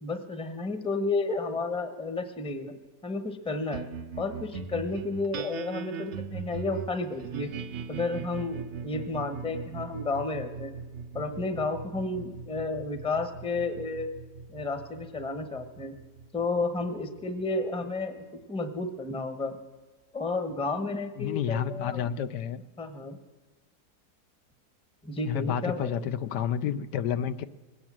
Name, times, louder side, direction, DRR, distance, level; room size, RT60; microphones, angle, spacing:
voice 1, 0.0-2.7 3.0-3.9 4.2-7.5 7.9-10.7 11.1-14.1 14.5-15.9 16.3-19.6 20.1-22.1 22.8-23.2 25.0-25.9, left 3 dB, 5° left, 9 dB, 0.8 m, -32 dB
sound 1, 3.7-18.4, right 6 dB, 60° right, 0.8 m, -40 dB
voice 2, 21.2-22.6 25.3-27.5, left 9 dB, 80° left, 12 dB, 1.3 m, -30 dB
21.0 x 8.9 x 7.4 m, 1.4 s
omnidirectional pair, 1.8 m